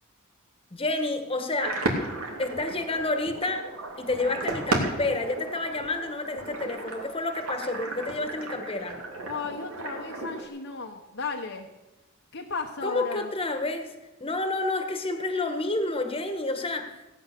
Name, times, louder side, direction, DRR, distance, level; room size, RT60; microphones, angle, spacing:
voice 1, 0.7-1.8 2.4-3.6 4.0-9.0 12.8-13.9 14.2-16.9, left 2 dB, 25° left, 7 dB, 1.6 m, -29 dB
sound 1, 1.6-10.5, right 2 dB, 90° right, 2.9 m, -34 dB
voice 2, 9.3-11.7 12.3-13.3, left 4 dB, 60° left, 1 dB, 1.2 m, -35 dB
17.0 x 9.7 x 6.8 m, 1.0 s
head